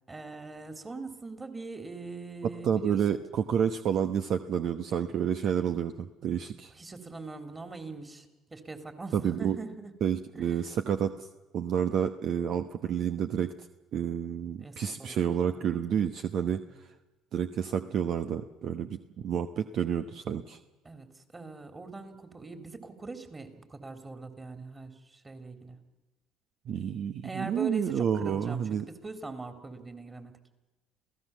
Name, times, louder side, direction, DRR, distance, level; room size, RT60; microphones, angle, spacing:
voice 1, 0.1-3.2 6.7-9.9 10.3-10.6 14.6-15.7 20.8-25.8 27.2-30.3, right 3 dB, 25° right, 7 dB, 3.7 m, -42 dB
voice 2, 2.6-6.7 9.1-9.6 10.0-11.3 11.5-13.5 13.9-16.9 17.3-20.6 26.7-28.9, right 8 dB, 60° right, 9 dB, 1.0 m, -29 dB
28.0 x 16.5 x 7.3 m, 1.1 s
hypercardioid pair, 60°, 0 cm